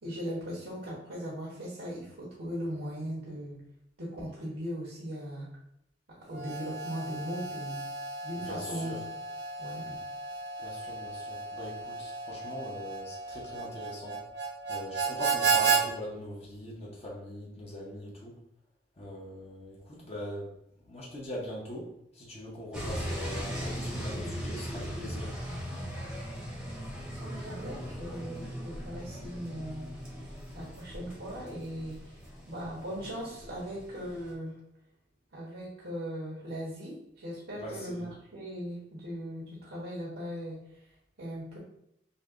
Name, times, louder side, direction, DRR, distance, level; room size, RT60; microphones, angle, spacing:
voice 1, 0.0-3.6 4.0-5.5 6.3-7.9 8.2-8.9 9.6-10.0 27.2-29.8 30.1-30.2 30.5-32.2 32.5-34.5 35.3-40.6 41.2-41.6, equal, 85° right, -5 dB, 1.1 m, -38 dB
Harmonica, 6.3-15.8, right 5 dB, 65° right, 0.7 m, -33 dB
voice 2, 8.4-9.0 10.6-14.2 14.7-18.4 19.0-20.5 20.8-25.3 37.5-38.1, left 1 dB, 35° left, -4 dB, 0.9 m, -42 dB
sound 1, 22.7-34.3, equal, 5° right, 0.8 m, -39 dB
5.3 x 2.3 x 2.5 m, 0.76 s
head